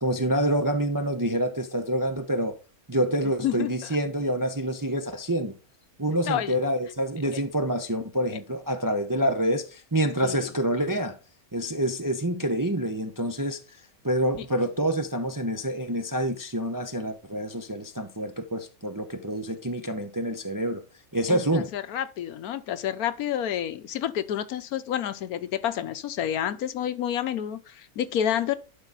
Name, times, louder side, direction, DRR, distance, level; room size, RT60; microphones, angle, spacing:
voice 1, 0.0-2.6 2.9-5.5 6.0-11.1 11.5-13.6 14.0-20.8 21.1-21.7, right 1 dB, 25° right, 0.4 m, -27 dB
voice 2, 3.4-4.0 6.3-6.5 7.3-7.4 10.2-10.5 14.4-14.5 21.3-28.6, left 10 dB, 80° left, 1.2 m, -29 dB
11.5 x 4.7 x 3.9 m
omnidirectional pair, 1.6 m